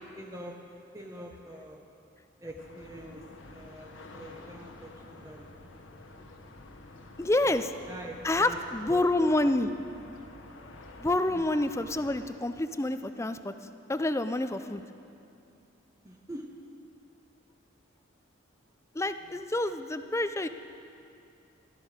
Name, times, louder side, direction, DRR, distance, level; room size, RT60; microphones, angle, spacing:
voice 1, 0.1-0.6 0.9-1.8 2.4-5.6 7.4-7.6 7.9-8.6 8.9-9.5 11.3-11.4 16.0-16.5, right 1 dB, 15° right, 1 dB, 0.9 m, -44 dB
sound 1, 2.6-12.3, left 2 dB, 75° left, 1.2 m, -49 dB
voice 2, 7.2-7.6 8.2-9.7 11.0-13.5 13.9-14.8 19.0-20.5, left 2 dB, 15° left, 10 dB, 0.4 m, -28 dB
15.0 x 13.0 x 6.5 m, 2.6 s
head